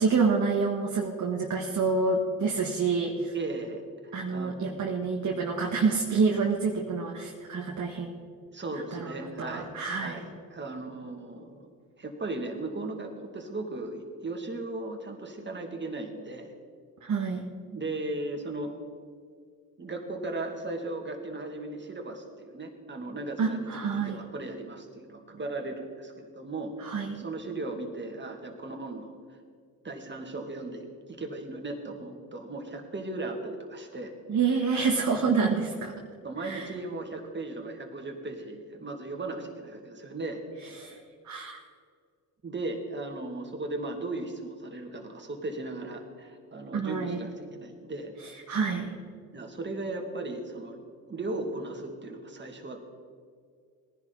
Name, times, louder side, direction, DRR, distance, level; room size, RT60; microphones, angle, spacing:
voice 1, 0.0-3.3 4.1-8.1 8.9-10.2 17.0-17.4 23.4-24.2 26.8-27.2 34.3-35.9 36.4-36.7 40.8-41.6 46.7-47.2 48.5-49.0, right 4 dB, 50° right, 0 dB, 1.7 m, -28 dB
voice 2, 3.3-4.8 8.5-11.7 12.0-16.5 17.7-18.7 19.8-26.7 27.1-29.4 29.8-34.1 36.2-40.7 42.4-48.1 49.3-50.8 51.1-52.8, right 2 dB, 30° right, 3 dB, 2.4 m, -37 dB
18.5 x 11.0 x 4.1 m, 2.1 s
supercardioid pair, 65°, 38 cm